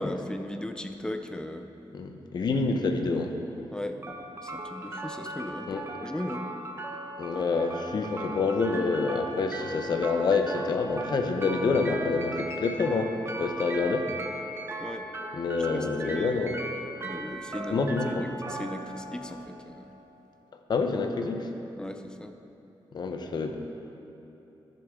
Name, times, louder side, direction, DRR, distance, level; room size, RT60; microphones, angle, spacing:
voice 1, 0.0-1.7 3.7-4.0 4.4-6.5 14.8-15.1 15.7-16.3 17.0-17.8 18.1-19.9 21.8-22.3, left 1 dB, 10° left, 6 dB, 0.4 m, -37 dB
voice 2, 1.9-3.3 5.7-5.8 7.2-14.1 15.3-16.6 17.7-18.3 20.7-21.5 22.9-23.6, left 4 dB, 55° left, 5 dB, 0.7 m, -27 dB
sound 1, 4.0-20.0, right 1 dB, 30° right, 0.7 m, -38 dB
14.0 x 6.8 x 3.6 m, 3.0 s
wide cardioid pair, 165°, 9 cm